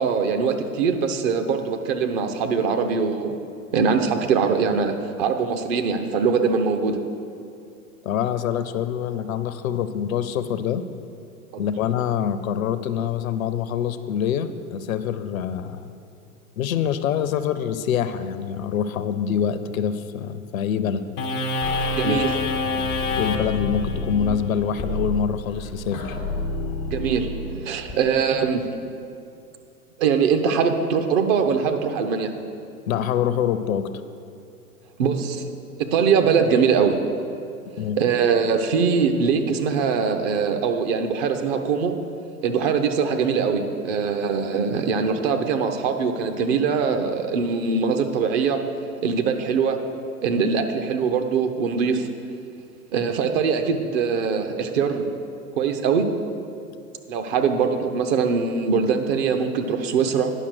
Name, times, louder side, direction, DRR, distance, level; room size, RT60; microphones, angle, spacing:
voice 1, 0.0-3.4 3.7-7.0 11.5-11.6 22.0-22.4 26.9-27.3 27.6-28.6 30.0-32.3 35.0-35.4 35.8-37.0 38.0-41.9 42.4-48.6 49.0-49.8 50.2-52.1 52.9-55.1 55.6-56.1 57.1-60.3, right 6 dB, 40° right, 6 dB, 0.8 m, -22 dB
voice 2, 8.0-10.8 11.6-15.9 16.6-21.0 22.0-22.2 23.2-26.2 32.9-33.9 37.8-38.0, left 8 dB, 60° left, 12 dB, 0.6 m, -25 dB
sound 1, 21.2-27.9, left 2 dB, 15° left, 0.3 m, -27 dB
10.0 x 5.8 x 6.2 m, 2.5 s
figure-of-eight pair, 100°, 47 cm